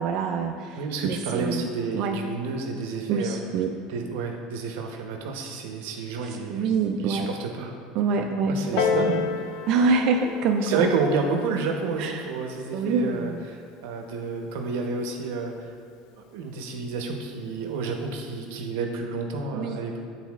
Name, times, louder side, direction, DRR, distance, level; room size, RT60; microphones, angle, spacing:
voice 1, 0.0-1.7 1.9-2.2 3.1-3.8 6.2-7.3 8.0-9.2 9.7-10.8 12.0-12.2 12.7-13.4 19.5-19.8, right 4 dB, 45° right, 3 dB, 0.3 m, -26 dB
voice 2, 0.8-3.4 3.8-6.7 7.0-7.7 8.1-9.2 9.5-9.6 10.6-15.7 16.3-20.0, right 4 dB, 80° right, 3 dB, 0.8 m, -30 dB
Piano, 8.8-14.0 14.8-14.9, left 7 dB, 60° left, 0.4 m, -32 dB
10.0 x 4.0 x 2.4 m, 2.2 s
cardioid pair, 155°, 0 cm